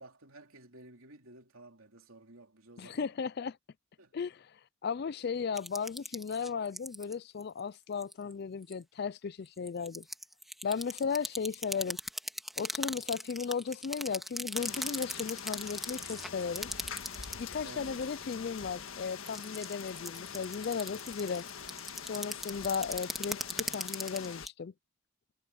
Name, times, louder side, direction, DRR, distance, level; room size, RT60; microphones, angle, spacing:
voice 1, 0.0-3.1 4.0-4.1 17.6-18.1, right 2 dB, 80° right, 3.2 m, -53 dB
voice 2, 2.8-3.6 4.1-4.5 4.8-10.1 10.6-12.0 12.6-16.7 17.4-21.5 22.1-24.7, left 6 dB, 50° left, 0.4 m, -35 dB
sound 1, 5.6-7.1 7.4-7.6 8.0-8.3 8.6-8.7 9.5-17.4 17.7-18.3 18.9-24.5, equal, ahead, 1.8 m, -39 dB
sound 2, 14.5-24.5, left 7 dB, 75° left, 1.6 m, -44 dB
head